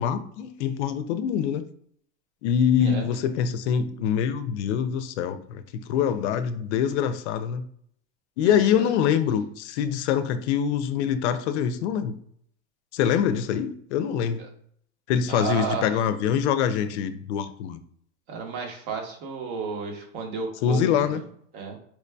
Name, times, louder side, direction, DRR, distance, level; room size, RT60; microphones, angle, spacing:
voice 1, 0.0-1.6 2.4-7.6 8.4-12.2 12.9-14.4 15.1-17.8 20.6-21.2, left 8 dB, 70° left, 11 dB, 0.5 m, -24 dB
voice 2, 8.4-8.9 14.4-14.5 15.3-15.9 18.3-21.2 21.5-21.8, right 5 dB, 45° right, 3 dB, 0.9 m, -33 dB
4.5 x 2.6 x 2.2 m, 0.65 s
supercardioid pair, 170°, 35 cm